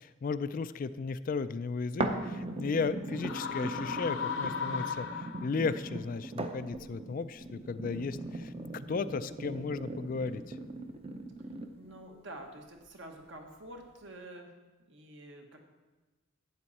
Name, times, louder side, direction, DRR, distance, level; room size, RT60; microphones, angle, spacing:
voice 1, 0.0-10.6, left 4 dB, 40° left, 13 dB, 0.3 m, -35 dB
sound 1, 2.0-12.0 12.6-12.7, right 2 dB, 30° right, 0.7 m, -39 dB
sound 2, 3.1-5.8, left 6 dB, 65° left, 0.8 m, -36 dB
voice 2, 11.7-14.5 14.9-15.6, right 1 dB, 65° right, 3 dB, 1.4 m, -48 dB
12.0 x 8.6 x 4.2 m, 1.2 s
head